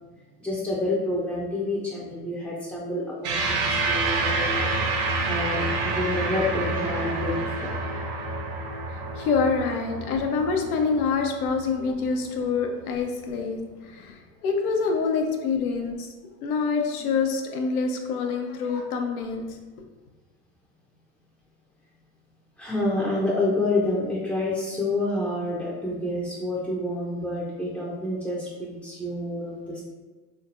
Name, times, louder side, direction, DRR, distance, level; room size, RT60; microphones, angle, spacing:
voice 1, 0.4-7.3 7.6-7.7 22.6-29.8, left 2 dB, 5° left, -7 dB, 0.6 m, -28 dB
sound 1, 3.2-11.9, right 3 dB, 45° right, 0.9 m, -28 dB
voice 2, 8.9-16.1 16.4-19.4, left 5 dB, 70° left, 3 dB, 0.8 m, -26 dB
3.9 x 3.4 x 2.5 m, 1.3 s
hypercardioid pair, 80°, 45 cm